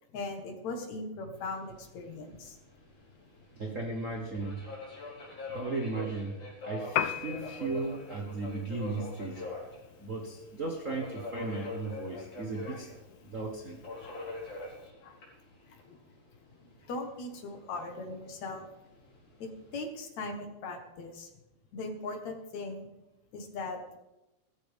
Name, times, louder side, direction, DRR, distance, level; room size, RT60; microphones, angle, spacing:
voice 1, 0.1-2.6 11.6-11.7 12.7-12.8 14.0-14.2 15.0-15.2 15.7-16.0 16.8-18.7 19.4-21.3 21.7-22.9 23.3-24.0, left 3 dB, 65° left, 4 dB, 2.9 m, -39 dB
Subway metro underground, 1.3-19.8, left 2 dB, 45° left, 5.4 m, -45 dB
voice 2, 3.5-4.6 5.5-9.4 10.0-13.8, right 3 dB, 75° right, 2 dB, 0.7 m, -36 dB
Piano, 6.9-14.9, left 10 dB, 85° left, 2.1 m, -41 dB
17.5 x 13.5 x 3.5 m, 0.99 s
omnidirectional pair, 3.5 m